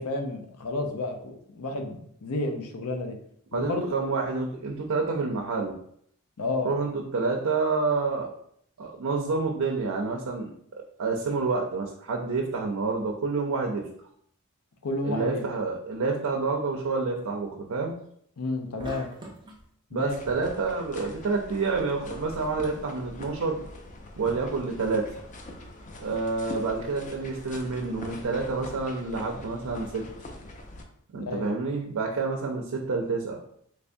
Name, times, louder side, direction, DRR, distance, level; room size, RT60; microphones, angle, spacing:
voice 1, 0.0-3.2 3.5-4.0 6.4-6.7 14.8-15.4 18.4-19.1 19.9-20.1 31.1-31.5, left 2 dB, 85° left, 5 dB, 0.6 m, -31 dB
voice 2, 3.5-5.7 6.6-8.3 8.8-13.8 15.0-17.9 19.9-23.6 24.2-25.1 26.0-30.1 31.1-33.4, right 4 dB, 75° right, 1 dB, 0.5 m, -28 dB
sound 1, 18.8-19.7, right 1 dB, 20° right, 0.5 m, -42 dB
sound 2, 20.1-30.8, left 1 dB, 35° left, 0.4 m, -43 dB
3.3 x 3.3 x 2.6 m, 0.67 s
head